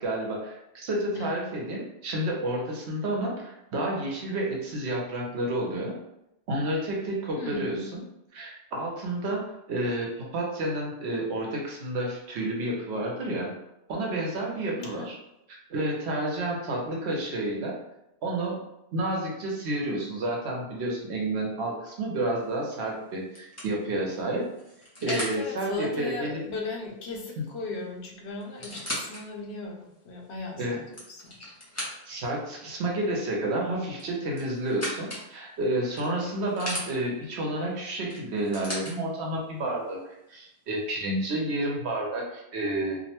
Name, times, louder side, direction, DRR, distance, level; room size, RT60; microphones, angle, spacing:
voice 1, 0.0-6.0 6.5-8.0 8.3-13.5 13.9-15.2 15.5-17.8 18.2-18.6 18.9-24.4 25.0-26.4 27.4-27.5 30.6-30.8 32.1-40.0 40.3-43.0, right 1 dB, 80° right, -2 dB, 1.0 m, -30 dB
voice 2, 7.4-7.9 14.8-15.1 25.1-31.4, left 3 dB, 85° left, 0 dB, 0.9 m, -36 dB
sound 1, 22.5-22.8 23.3-25.4 27.4-27.5 27.8-27.9 28.4-29.2 29.8-29.9 30.7-32.3 33.9-35.3 36.0-36.9 38.1-38.9 39.9-40.0, left 1 dB, 20° left, 0.6 m, -37 dB
2.6 x 2.1 x 2.8 m, 0.85 s
omnidirectional pair, 1.1 m